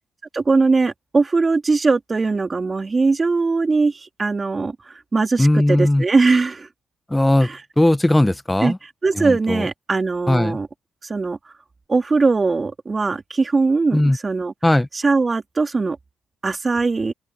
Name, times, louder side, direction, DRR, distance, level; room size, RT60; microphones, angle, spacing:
voice 1, 0.3-6.7 7.4-7.6 8.6-10.7 11.0-11.4 11.9-14.5 14.9-16.0 16.4-17.1, right 3 dB, 35° right, 2.9 m, -20 dB
voice 2, 5.4-6.0 7.1-7.5 7.8-8.8 9.2-9.7 10.3-10.6 13.9-14.2 14.6-14.9, left 1 dB, 10° left, 1.2 m, -17 dB
supercardioid pair, 60°, 0 cm